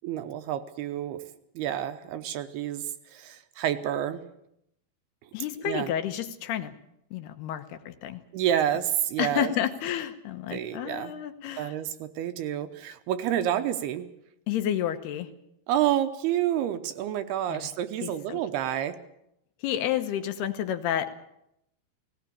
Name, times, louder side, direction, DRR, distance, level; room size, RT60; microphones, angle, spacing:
voice 1, 0.0-1.2 1.6-4.2 5.6-5.9 8.3-9.5 10.5-11.1 11.6-14.1 15.7-19.0, right 11 dB, 75° right, 9 dB, 2.7 m, -29 dB
voice 2, 5.3-6.7 7.1-8.2 9.2-11.8 14.5-15.3 17.5-17.7 18.0-18.4 19.6-21.3, left 10 dB, 75° left, 8 dB, 2.9 m, -30 dB
18.0 x 17.5 x 8.6 m, 0.79 s
omnidirectional pair, 4.9 m